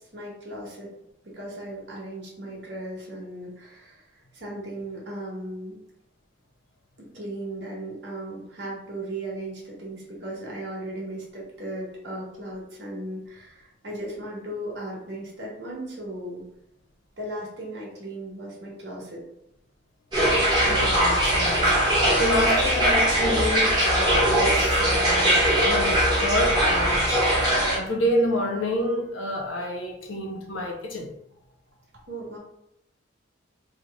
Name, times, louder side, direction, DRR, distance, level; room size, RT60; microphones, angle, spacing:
voice 1, 0.1-0.9 1.3-4.0 4.3-5.8 7.1-16.5 17.2-19.2 32.1-32.4, right 1 dB, 60° right, 1.3 m, -36 dB
sound 1, 20.1-27.8, right 1 dB, 25° right, 1.2 m, -21 dB
voice 2, 20.6-21.7 22.2-27.3 27.6-31.1, left 1 dB, 85° left, 0.7 m, -28 dB
3.1 x 2.2 x 4.0 m
head